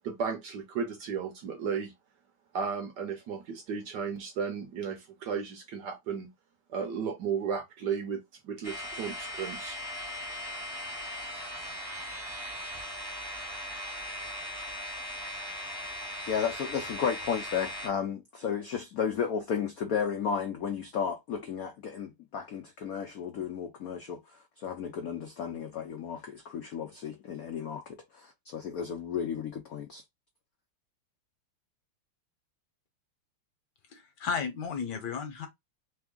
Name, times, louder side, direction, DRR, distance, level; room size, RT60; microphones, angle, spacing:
voice 1, 0.0-1.9 2.5-6.3 6.7-9.8, right 6 dB, 65° right, 1.1 m, -34 dB
sound 1, 8.6-17.9, left 1 dB, 25° right, 0.5 m, -39 dB
voice 2, 16.3-30.0, left 7 dB, 80° left, 0.8 m, -33 dB
voice 3, 33.9-35.5, left 6 dB, 60° left, 1.2 m, -34 dB
3.4 x 3.4 x 3.7 m
omnidirectional pair, 2.4 m